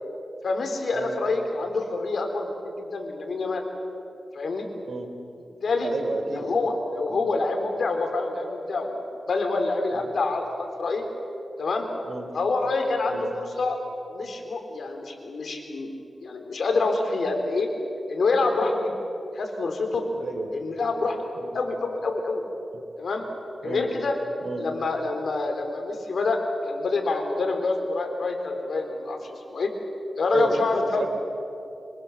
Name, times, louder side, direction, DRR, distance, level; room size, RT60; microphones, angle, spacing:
voice 1, 0.4-3.6 4.3-4.7 5.6-5.9 6.3-11.0 11.6-11.9 12.3-13.8 14.1-15.9 16.2-17.7 18.1-18.9 19.3-20.0 20.5-21.2 21.5-22.4 23.0-23.3 23.6-24.1 24.6-26.4 26.6-29.7 30.2-31.1, left 3 dB, 75° left, 4 dB, 4.0 m, -26 dB
voice 2, 5.8-6.5 7.1-7.3 9.9-10.0 12.0-12.3 13.1-13.3 20.2-20.5 21.3-21.5 23.6-23.9 24.4-24.7 30.3-30.7 31.0-31.1, right 3 dB, 70° right, 5 dB, 3.5 m, -31 dB
25.5 x 24.5 x 7.4 m, 2.7 s
cardioid pair, 70°, 0 cm